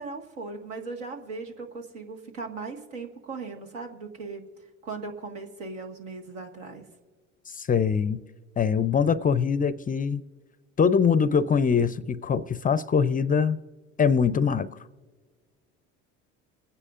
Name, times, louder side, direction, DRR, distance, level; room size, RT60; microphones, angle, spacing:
voice 1, 0.0-4.5 4.8-6.9, right 4 dB, 80° right, 1.7 m, -38 dB
voice 2, 7.5-8.2 8.6-10.2 10.8-13.6 14.0-14.7, left 6 dB, 25° left, 0.4 m, -23 dB
28.0 x 9.8 x 2.5 m
hypercardioid pair, 70°, 37 cm